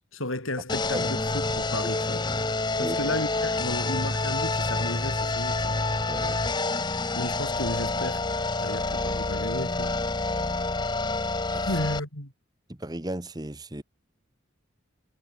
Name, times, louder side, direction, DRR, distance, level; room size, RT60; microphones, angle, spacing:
voice 1, 0.1-2.3 2.8-5.8 7.1-8.3 8.6-10.0 11.7-12.3, left 1 dB, 75° left, 7.7 m, -33 dB
sound 1, 0.7-12.0, left 3 dB, 20° left, 1.2 m, -28 dB
voice 2, 2.8-3.1 6.1-6.4 11.5-11.6 12.7-13.8, right 1 dB, 20° right, 1.3 m, -35 dB
head